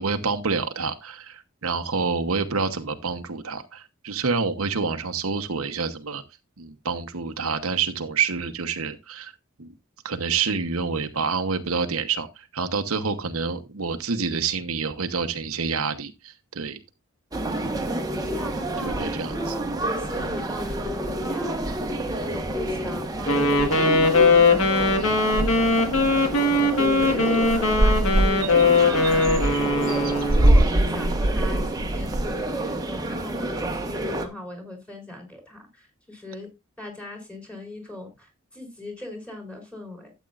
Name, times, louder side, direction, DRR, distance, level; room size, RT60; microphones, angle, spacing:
voice 1, 0.0-6.2 6.6-9.3 9.6-9.7 10.0-16.8 18.8-19.5 25.0-25.2, right 5 dB, 80° right, 1.0 m, -28 dB
sound 1, 17.3-34.3, right 1 dB, 20° right, 1.2 m, -29 dB
voice 2, 17.5-17.9 18.2-24.0 24.5-25.1 26.4-29.3 29.7-36.5 36.8-40.1, left 1 dB, 5° left, 3.6 m, -38 dB
Wind instrument woodwind instrument, 23.3-30.7, left 3 dB, 75° left, 1.6 m, -20 dB
sound 2, 25.3-26.1 26.5-26.6 26.9-27.1 27.4-32.4, right 1 dB, 45° right, 0.9 m, -23 dB
13.0 x 8.2 x 2.5 m
head